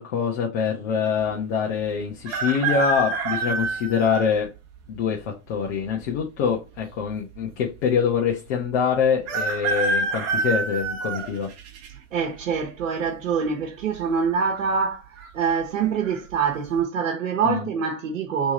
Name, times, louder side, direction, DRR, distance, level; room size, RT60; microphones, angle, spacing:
voice 1, 0.0-4.5 4.9-11.5 17.4-17.7, left 6 dB, 60° left, 1.1 m, -24 dB
sound 1, 2.2-4.3 4.9-5.0 6.1-6.8 7.1-7.2 7.3-7.4 9.3-11.9 12.4-12.8 13.9-14.3 14.5-14.6 15.2-15.6 16.0-16.2, right 3 dB, 40° right, 1.0 m, -27 dB
voice 2, 12.1-15.0 15.3-18.5, right 6 dB, 85° right, 1.1 m, -25 dB
3.4 x 3.1 x 4.1 m
hypercardioid pair, 105°, 38 cm